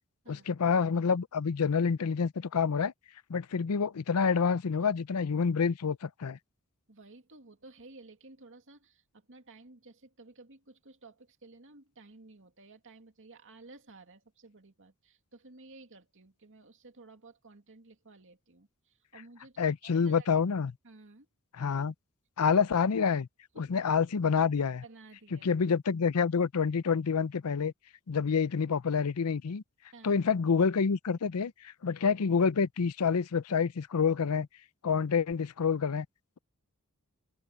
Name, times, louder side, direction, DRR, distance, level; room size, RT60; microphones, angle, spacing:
voice 1, 0.3-2.9 3.3-6.4 19.6-20.7 21.6-21.9 22.4-23.3 23.6-24.8 25.3-27.7 28.1-29.6 30.0-34.5 34.8-36.1, left 6 dB, 85° left, 0.6 m, -28 dB
voice 2, 6.9-20.3 20.8-21.3 23.5-23.7 24.8-25.6 29.9-30.2, right 3 dB, 60° right, 2.3 m, -54 dB
head